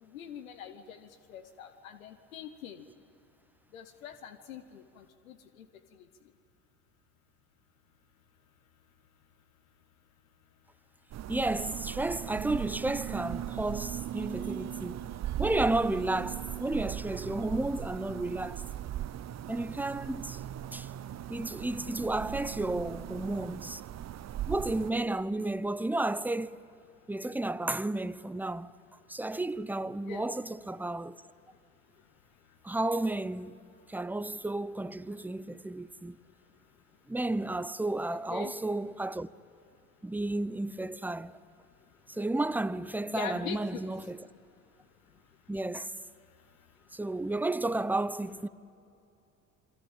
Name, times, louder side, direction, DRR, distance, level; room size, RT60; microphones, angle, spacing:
voice 1, 0.1-1.0 1.3-2.8 3.7-5.4 30.1-30.3 38.1-38.5 43.1-43.8, left 8 dB, 90° left, 1.1 m, -42 dB
sound 1, 11.1-24.9, right 11 dB, 40° right, 0.8 m, -38 dB
voice 2, 11.3-15.0 15.4-18.6 19.5-20.4 20.7-20.9 21.3-23.8 24.5-26.6 27.1-28.7 29.1-31.2 32.6-33.6 33.9-36.2 37.1-39.3 40.0-41.4 42.1-44.3 45.5-45.9 46.9-48.5, right 2 dB, 5° right, 0.7 m, -32 dB
28.0 x 22.5 x 9.0 m
hypercardioid pair, 60°, 40 cm